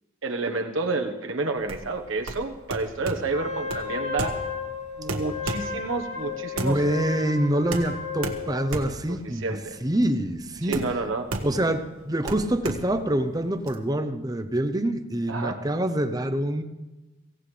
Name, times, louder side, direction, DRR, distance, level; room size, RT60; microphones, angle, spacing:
voice 1, 0.2-4.3 5.0-6.8 9.4-9.8 10.6-11.2 15.3-15.6, right 3 dB, 65° right, 5 dB, 1.3 m, -29 dB
sound 1, 1.6-13.7, right 2 dB, 80° right, 1.6 m, -35 dB
Wind instrument woodwind instrument, 3.3-8.9, left 5 dB, 30° left, 1.8 m, -34 dB
voice 2, 6.6-9.5 9.8-10.9 11.4-16.6, right 1 dB, 15° right, 9 dB, 0.7 m, -26 dB
24.0 x 17.0 x 3.3 m, 1.2 s
head